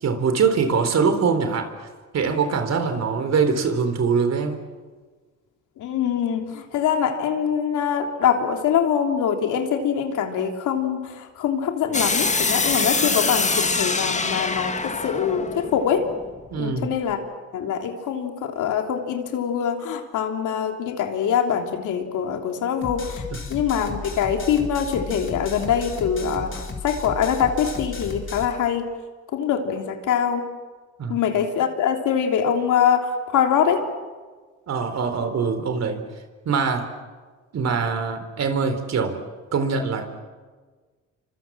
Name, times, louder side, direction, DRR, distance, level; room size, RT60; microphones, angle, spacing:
voice 1, 0.0-1.7 2.1-4.6 16.5-16.9 23.3-23.4 31.0-31.2 34.7-36.0 36.5-36.9 37.5-39.2 39.5-40.1, right 5 dB, 60° right, 8 dB, 4.0 m, -23 dB
voice 2, 5.8-16.0 16.6-17.2 17.5-23.2 23.5-28.9 29.3-30.4 31.1-33.8, left 8 dB, 80° left, 4 dB, 3.3 m, -23 dB
sound 1, 11.9-16.8, left 3 dB, 25° left, 2.0 m, -24 dB
sound 2, 22.8-28.5, left 4 dB, 40° left, 4.2 m, -34 dB
28.5 x 25.0 x 7.6 m, 1.4 s
cardioid pair, 90°, 30 cm